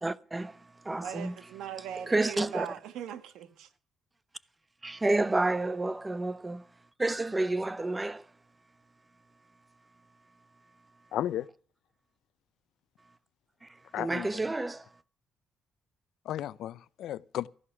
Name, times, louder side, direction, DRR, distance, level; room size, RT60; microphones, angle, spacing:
voice 1, 0.0-1.4 2.1-2.7 4.8-6.7 7.0-8.3 13.6-15.0, right 2 dB, 15° right, 0.7 m, -30 dB
voice 2, 1.0-3.7, right 9 dB, 85° right, 1.5 m, -40 dB
voice 3, 11.1-11.5 13.9-14.3 16.2-17.5, left 12 dB, 80° left, 0.6 m, -34 dB
14.5 x 11.0 x 5.9 m
cardioid pair, 90°, 0 cm